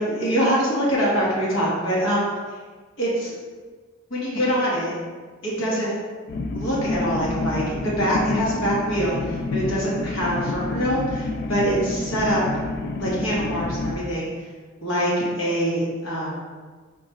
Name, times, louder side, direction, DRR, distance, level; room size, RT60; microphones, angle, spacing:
voice 1, 0.0-2.3 3.0-3.4 4.1-5.0 5.4-5.9 6.5-12.4 13.0-14.3 14.8-16.5, equal, 75° left, -6 dB, 1.2 m, -24 dB
sound 1, 6.3-14.0, left 2 dB, 55° left, 0.3 m, -28 dB
4.9 x 2.3 x 3.0 m, 1.4 s
head